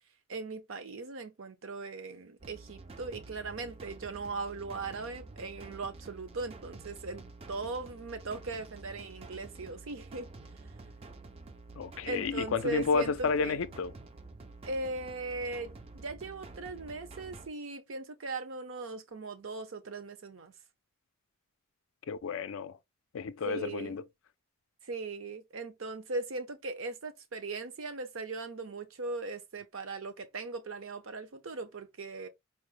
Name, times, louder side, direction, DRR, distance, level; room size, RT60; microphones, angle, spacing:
voice 1, 0.3-10.3 12.1-13.6 14.7-20.5 23.4-24.0 24.9-32.3, right 3 dB, 65° right, 0.7 m, -39 dB
sound 1, 2.4-17.5, right 3 dB, 25° right, 0.4 m, -49 dB
voice 2, 11.8-13.9 22.1-22.8 23.1-24.0, left 5 dB, 65° left, 0.4 m, -31 dB
4.3 x 2.1 x 3.1 m
head